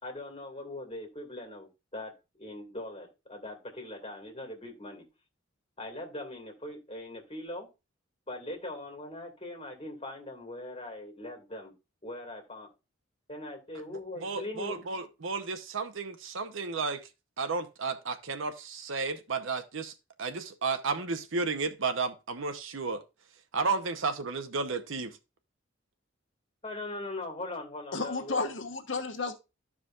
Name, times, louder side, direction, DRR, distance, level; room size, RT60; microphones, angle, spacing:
voice 1, 0.0-2.1 2.4-5.0 5.8-7.7 8.3-11.7 12.0-12.7 13.3-14.8 26.6-28.5, left 1 dB, 30° left, 2.2 m, -41 dB
voice 2, 14.2-17.0 17.4-19.9 20.2-23.0 23.5-25.2, right 4 dB, 80° right, 0.8 m, -32 dB
voice 3, 27.9-29.3, left 3 dB, 70° left, 1.1 m, -32 dB
13.5 x 4.8 x 2.4 m
head